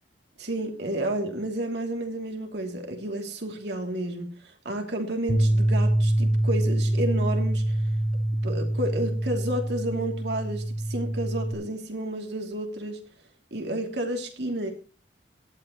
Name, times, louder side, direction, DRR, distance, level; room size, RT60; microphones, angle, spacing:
voice 1, 0.4-7.8 8.4-13.0 13.5-14.7, right 1 dB, 70° right, 3 dB, 2.9 m, -31 dB
Bass guitar, 5.3-11.5, right 1 dB, 60° left, 3.7 m, -25 dB
17.5 x 12.0 x 3.1 m, 0.37 s
head